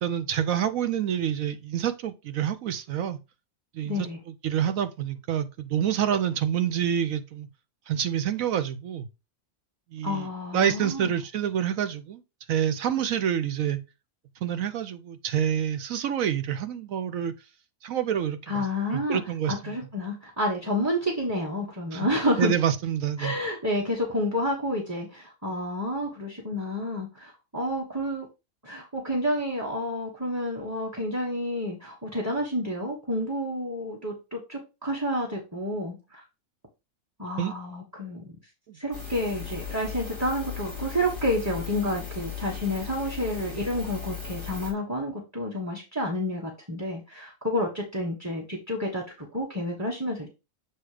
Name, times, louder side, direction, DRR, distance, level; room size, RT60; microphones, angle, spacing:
voice 1, 0.0-3.2 3.7-4.1 4.4-7.5 7.9-9.1 9.9-10.3 10.5-12.2 12.5-13.8 14.4-17.3 17.8-18.7 18.9-19.7 21.9-22.1 22.4-23.3 37.4-37.5 38.7-38.8, right 9 dB, 75° right, 1.1 m, -27 dB
voice 2, 3.8-4.2 10.0-11.1 18.5-19.2 19.5-22.5 23.2-28.3 28.6-36.2 37.2-38.2 38.7-50.3, left 1 dB, 15° right, 1.1 m, -29 dB
sound 1, 38.9-44.7, left 7 dB, 50° right, 2.9 m, -37 dB
7.6 x 2.9 x 4.9 m
omnidirectional pair, 1.5 m